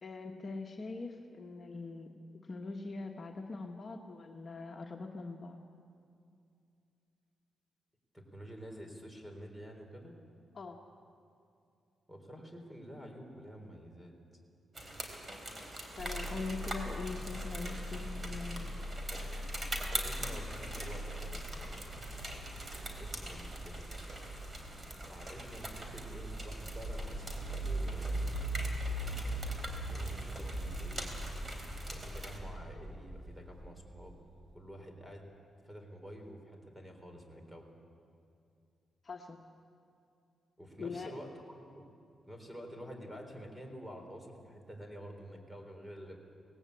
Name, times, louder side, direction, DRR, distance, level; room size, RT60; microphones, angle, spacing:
voice 1, 0.0-2.1 2.4-5.6 10.5-10.8 15.9-18.9 39.0-39.4 40.8-41.1, left 3 dB, 45° left, 2 dB, 1.4 m, -42 dB
voice 2, 8.1-10.1 12.1-14.1 19.8-22.0 23.0-23.9 25.0-28.5 29.8-31.4 31.8-34.2 34.5-35.2 35.6-37.7 40.6-41.3 41.7-41.9 42.3-46.2, equal, 10° right, 3 dB, 4.0 m, -49 dB
sound 1, 14.7-32.4, right 1 dB, 35° right, 3.5 m, -44 dB
sound 2, 16.0-34.5, right 1 dB, 65° right, 3.8 m, -41 dB
18.5 x 18.0 x 8.4 m, 2.5 s
cardioid pair, 75°, 0 cm